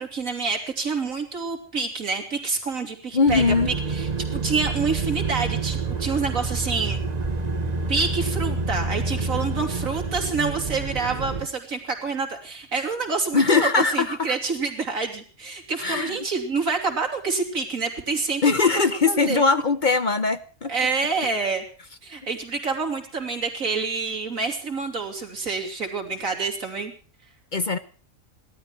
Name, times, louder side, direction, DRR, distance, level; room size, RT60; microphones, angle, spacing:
voice 1, 0.0-7.0 7.9-19.4 20.7-21.6 22.0-26.9, right 4 dB, 85° right, 3 dB, 3.5 m, -27 dB
voice 2, 3.1-3.7 13.3-14.3 15.8-16.2 18.4-20.7 27.5-27.8, left 4 dB, 40° left, 12 dB, 0.9 m, -21 dB
sound 1, 3.3-11.5, right 4 dB, 30° right, 1.3 m, -28 dB
18.0 x 13.0 x 6.1 m, 0.40 s
omnidirectional pair, 1.4 m